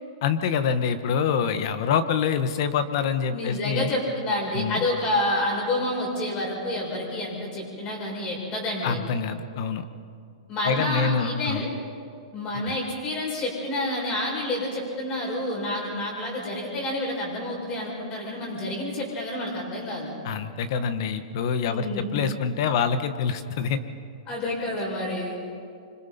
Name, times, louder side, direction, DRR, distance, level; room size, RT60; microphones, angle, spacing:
voice 1, 0.2-3.9 4.5-4.8 8.8-9.8 10.6-11.7 12.6-12.8 20.2-23.8, left 6 dB, 50° left, 10 dB, 1.4 m, -26 dB
voice 2, 3.3-9.0 10.5-11.7 12.3-20.1 21.7-22.2 24.3-25.4, left 1 dB, 25° left, -2 dB, 6.8 m, -29 dB
26.0 x 25.5 x 4.4 m, 2.3 s
hypercardioid pair, 155°, 3 cm